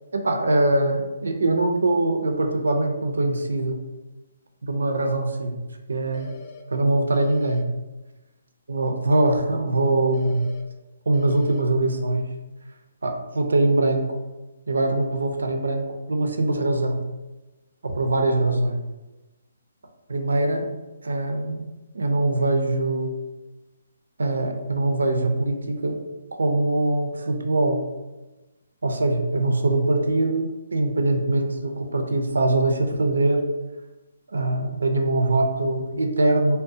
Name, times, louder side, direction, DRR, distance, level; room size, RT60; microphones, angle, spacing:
voice 1, 0.1-3.8 4.6-5.6 5.9-6.4 6.7-7.7 8.7-10.5 11.1-12.2 13.0-14.1 14.7-17.0 17.8-18.8 20.1-20.7 21.0-21.7 21.9-23.2 24.2-26.0 26.3-27.8 28.8-33.4 34.3-36.6, right 2 dB, 85° right, 4 dB, 0.4 m, -22 dB
sound 1, 6.1-6.6 7.1-7.6 10.1-10.6 11.1-11.6, left 4 dB, 30° left, 0.3 m, -45 dB
2.4 x 2.0 x 2.6 m, 1.1 s
hypercardioid pair, 150°, 0 cm